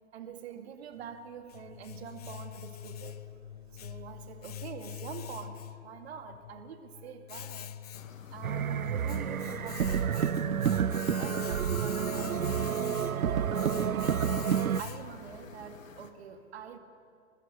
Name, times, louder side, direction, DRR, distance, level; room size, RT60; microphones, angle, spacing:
voice 1, 0.1-3.4 3.7-7.7 8.3-12.4 13.0-16.8, right 6 dB, 45° right, 7 dB, 2.2 m, -45 dB
Domestic sounds home sounds, 1.0-15.3, left 10 dB, 30° left, 0.5 m, -44 dB
sound 1, 7.9-16.1, left 5 dB, 65° left, 2.0 m, -51 dB
sound 2, 8.4-14.8, right 8 dB, 75° right, 0.6 m, -29 dB
22.5 x 20.5 x 6.8 m, 2.4 s
figure-of-eight pair, 120°, 42 cm